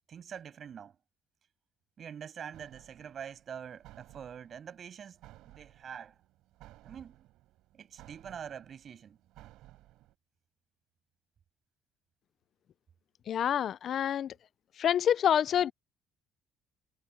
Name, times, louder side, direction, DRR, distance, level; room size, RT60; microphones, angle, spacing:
voice 1, 0.1-1.0 2.0-6.2 6.8-7.3 7.7-9.2, right 8 dB, 45° right, 7.6 m, -45 dB
sound 1, 2.5-10.1, right 16 dB, 80° right, 5.5 m, -57 dB
voice 2, 13.3-14.3 14.8-15.7, left 9 dB, 55° left, 0.4 m, -27 dB
cardioid pair, 105°, 0 cm